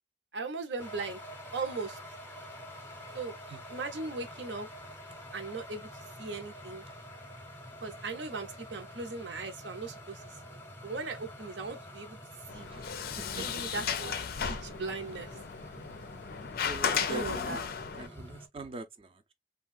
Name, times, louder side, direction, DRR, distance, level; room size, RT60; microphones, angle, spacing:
voice 1, 0.3-1.2 1.5-2.0 3.1-3.3 3.7-4.7 5.3-6.8 7.8-10.2 10.5-12.2 12.5-12.7 13.4-14.1 14.4-15.4 17.0-17.6, right 3 dB, 75° right, 0.8 m, -38 dB
sound 1, 0.8-18.5, equal, 10° left, 0.7 m, -47 dB
Sliding door, 12.5-18.1, left 7 dB, 55° left, 0.4 m, -35 dB
voice 2, 16.6-17.6 18.0-19.3, right 2 dB, 30° right, 0.4 m, -42 dB
3.4 x 2.2 x 2.3 m
head